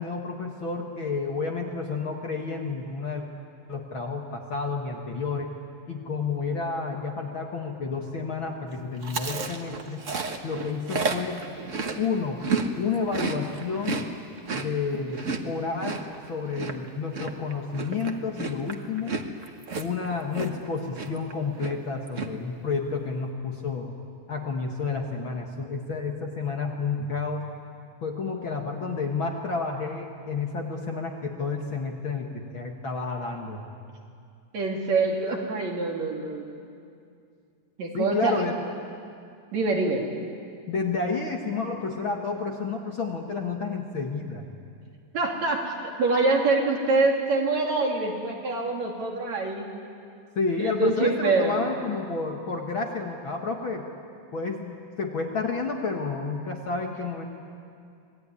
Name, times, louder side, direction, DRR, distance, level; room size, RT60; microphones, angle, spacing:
voice 1, 0.0-3.2 3.7-5.5 5.9-10.0 10.4-11.4 12.0-12.4 12.8-14.1 14.5-16.0 16.3-19.2 19.8-23.9 24.3-27.5 28.0-33.6 37.9-38.5 40.7-44.4 50.4-53.9 54.3-57.3, left 4 dB, 45° left, 1 dB, 1.9 m, -30 dB
Chewing mastication, 9.0-12.7 12.9-20.7 20.9-21.3 21.6-22.3, right 4 dB, 85° right, 0.6 m, -32 dB
voice 2, 34.5-36.4 37.8-38.4 39.5-40.1 45.1-49.7 50.6-51.6, right 3 dB, 60° right, 0 dB, 4.0 m, -25 dB
26.0 x 19.5 x 9.8 m, 2.4 s
omnidirectional pair, 3.7 m